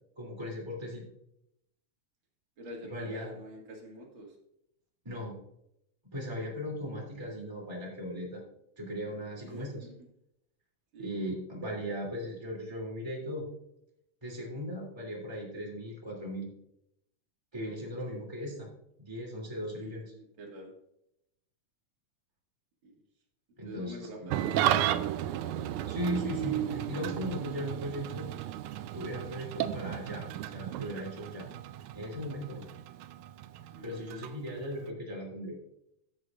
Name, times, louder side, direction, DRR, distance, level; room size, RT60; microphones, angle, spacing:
voice 1, 0.2-1.0 2.9-3.3 5.0-5.3 6.0-8.4 8.8-9.9 11.0-13.5 14.2-16.5 17.5-18.7 19.0-20.0 23.6-24.3 25.9-28.3 28.9-30.2 30.5-31.5 31.9-32.7 33.8-35.6, equal, 10° right, -2 dB, 2.5 m, -37 dB
voice 2, 2.6-4.4 9.4-9.9 10.9-11.2 17.6-17.7 18.0-18.2 19.8-20.7 22.8-22.9 23.6-25.0 33.7-35.0, right 1 dB, 40° right, -2 dB, 2.5 m, -46 dB
Engine starting / Idling, 24.3-34.9, right 12 dB, 80° right, 1.8 m, -34 dB
14.5 x 6.6 x 2.4 m, 0.78 s
omnidirectional pair, 3.7 m